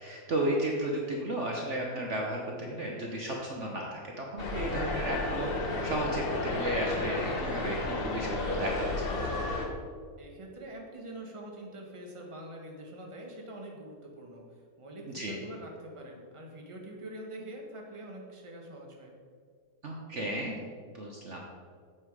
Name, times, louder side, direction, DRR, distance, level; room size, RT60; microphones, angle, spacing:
voice 1, 0.0-5.5 5.8-9.1 15.1-15.4 19.8-20.6 20.9-21.4, right 1 dB, 50° right, -1 dB, 1.2 m, -34 dB
sound 1, 4.4-9.7, left 2 dB, 40° left, 1.3 m, -32 dB
voice 2, 10.2-19.1, right 1 dB, 20° right, 0 dB, 1.3 m, -45 dB
8.8 x 7.3 x 4.8 m, 2.1 s
omnidirectional pair, 1.7 m